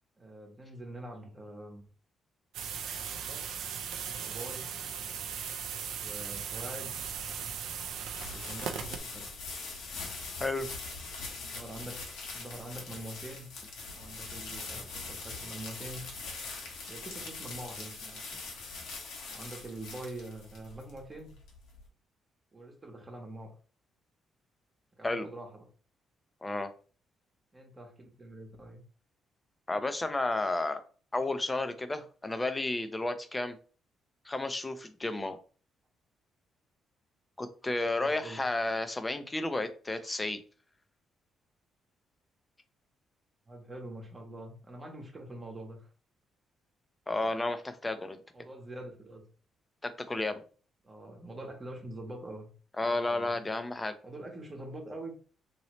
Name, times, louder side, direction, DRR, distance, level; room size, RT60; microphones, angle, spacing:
voice 1, 0.2-1.8 3.2-3.5 4.2-4.7 6.0-6.9 8.3-9.3 11.4-11.9 12.3-13.5 13.9-16.0 16.9-18.4 19.3-21.3 22.5-23.5 25.0-25.7 27.5-28.8 38.0-38.4 43.5-45.9 48.3-49.2 50.8-52.5 52.8-53.4 54.0-55.1, right 1 dB, 25° right, 3 dB, 1.0 m, -44 dB
sound 1, 2.5-9.0, right 7 dB, 85° right, 0.4 m, -38 dB
sound 2, 7.1-21.8, left 3 dB, 85° left, 1.0 m, -42 dB
voice 2, 26.4-26.7 29.7-30.8 31.1-33.6 34.3-35.4 37.4-40.4 47.1-48.2 49.8-50.4 52.8-53.9, left 2 dB, 20° left, 10 dB, 0.5 m, -32 dB
3.0 x 2.7 x 3.0 m, 0.38 s
cardioid pair, 90°, 0 cm